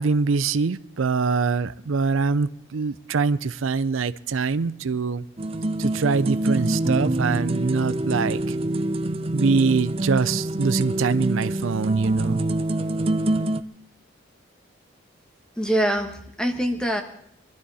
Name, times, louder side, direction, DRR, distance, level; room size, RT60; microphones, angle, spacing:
voice 1, 0.0-5.2 5.8-8.6 9.3-12.4, right 4 dB, 80° right, 15 dB, 0.5 m, -24 dB
sound 1, 5.4-13.6, right 1 dB, 30° right, 0.5 m, -25 dB
voice 2, 15.6-17.0, equal, 5° left, 5 dB, 1.3 m, -24 dB
24.0 x 12.5 x 4.2 m, 0.76 s
head